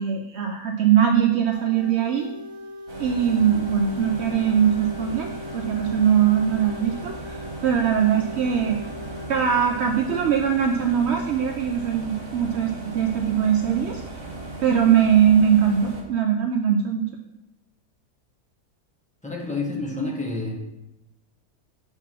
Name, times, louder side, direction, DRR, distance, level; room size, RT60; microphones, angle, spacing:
voice 1, 0.0-2.3 3.0-8.8 9.3-14.0 14.6-17.1, right 8 dB, 80° right, 3 dB, 0.6 m, -21 dB
sound 1, 1.5-9.9, left 2 dB, 25° left, 2.0 m, -40 dB
sound 2, 2.9-16.0, right 2 dB, 60° right, 1.7 m, -37 dB
voice 2, 19.2-20.6, left 2 dB, 5° left, -3 dB, 1.0 m, -29 dB
5.8 x 3.9 x 6.1 m, 0.91 s
omnidirectional pair, 1.7 m